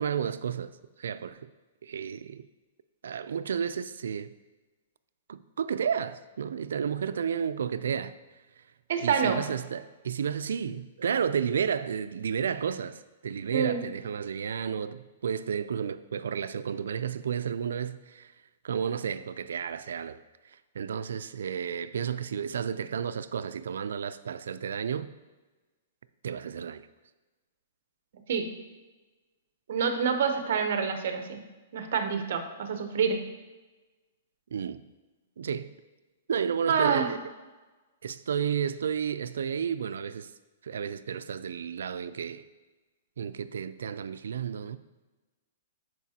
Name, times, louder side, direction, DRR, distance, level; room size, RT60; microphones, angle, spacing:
voice 1, 0.0-1.5 1.8-2.5 3.0-4.3 5.3-8.2 9.0-18.3 18.6-20.2 20.7-25.1 26.2-26.9 34.5-34.8 35.4-35.7 36.3-37.2 38.0-40.3 40.6-42.4 43.2-44.8, right 7 dB, 90° right, 0.3 m, -32 dB
voice 2, 8.9-9.4 13.5-13.8 28.3-28.5 29.7-31.4 31.7-33.2 36.7-37.1, right 6 dB, 50° right, 0.7 m, -27 dB
11.0 x 4.7 x 2.8 m
hypercardioid pair, 180°, 0 cm